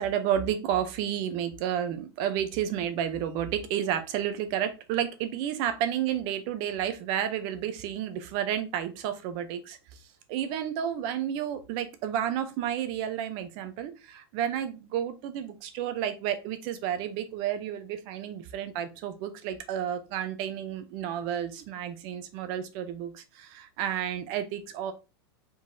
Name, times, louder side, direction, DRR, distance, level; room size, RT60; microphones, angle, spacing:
voice 1, 0.0-9.8 10.3-24.9, right 10 dB, 35° right, 10 dB, 0.6 m, -31 dB
5.1 x 3.8 x 2.7 m, 0.28 s
supercardioid pair, 165°, 14 cm